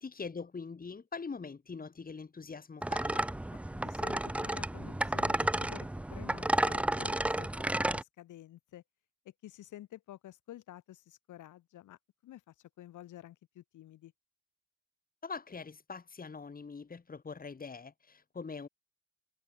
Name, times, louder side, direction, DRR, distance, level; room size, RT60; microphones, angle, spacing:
voice 1, 0.0-3.3 15.2-18.7, left 5 dB, 30° left, 2.8 m, -43 dB
sound 1, 2.8-8.0, right 1 dB, 5° right, 0.4 m, -32 dB
voice 2, 3.5-8.8 9.4-14.1, left 13 dB, 80° left, 3.9 m, -51 dB
cardioid pair, 90°, 30 cm